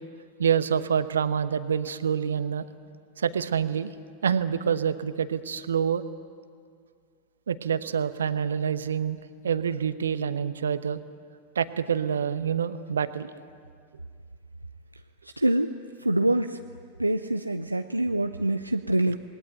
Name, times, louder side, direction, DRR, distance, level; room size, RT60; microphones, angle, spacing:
voice 1, 0.4-2.6 3.2-3.9 4.2-6.0 7.5-9.2 9.4-11.0 11.5-13.3, right 7 dB, 70° right, 12 dB, 1.1 m, -26 dB
voice 2, 15.4-15.7 16.0-16.6 17.0-19.2, right 1 dB, 85° right, 6 dB, 0.7 m, -25 dB
27.5 x 20.5 x 9.4 m, 2.1 s
figure-of-eight pair, 90°, 0 cm